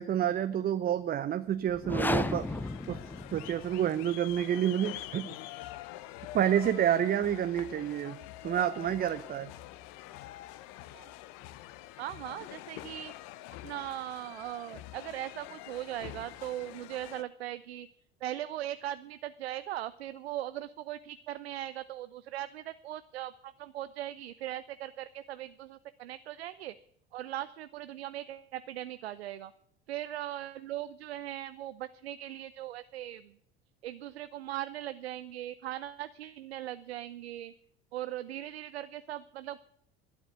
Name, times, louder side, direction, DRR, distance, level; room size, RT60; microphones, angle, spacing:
voice 1, 0.0-2.5 2.9-3.0 3.3-5.3 6.3-8.2 8.4-9.5, right 10 dB, 30° right, 11 dB, 0.7 m, -29 dB
sound 1, 1.7-3.8, left 2 dB, 5° left, 0.6 m, -33 dB
sound 2, 2.1-17.2, left 15 dB, 55° left, 0.8 m, -46 dB
voice 2, 12.0-13.1 13.6-17.9 18.2-26.8 27.1-29.5 29.9-33.4 33.8-37.5 37.9-39.6, right 13 dB, 80° right, 14 dB, 0.6 m, -39 dB
11.5 x 9.5 x 7.8 m, 0.71 s
hypercardioid pair, 75°, 31 cm